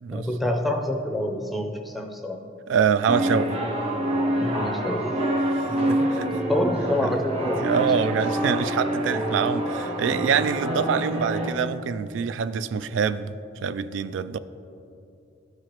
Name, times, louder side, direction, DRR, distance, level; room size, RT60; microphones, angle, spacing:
voice 1, 0.1-2.4 4.4-5.1 5.8-6.1 6.5-8.5 10.1-10.2 11.4-11.5, left 1 dB, ahead, 1 dB, 0.5 m, -28 dB
voice 2, 2.7-3.6 5.9-6.3 7.6-13.3 13.6-14.4, right 6 dB, 90° right, 14 dB, 0.3 m, -25 dB
sound 1, 3.1-11.5, right 1 dB, 35° right, 0.9 m, -26 dB
12.5 x 4.8 x 2.9 m, 2.7 s
head